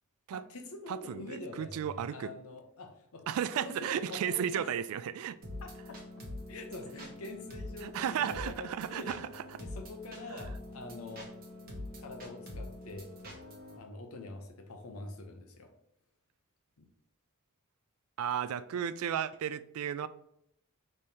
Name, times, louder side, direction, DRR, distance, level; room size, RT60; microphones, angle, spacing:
voice 1, 0.3-3.3 3.6-4.7 5.6-6.0 6.5-9.2 9.6-11.3 12.0-13.1 13.7-15.7 16.8-16.9, left 2 dB, 75° left, 0.8 m, -45 dB
voice 2, 0.9-2.3 3.3-5.4 7.8-9.4 18.2-20.1, right 9 dB, 70° right, 0.3 m, -34 dB
sound 1, 5.4-13.8, left 1 dB, 40° right, 1.0 m, -45 dB
5.3 x 3.2 x 2.8 m
head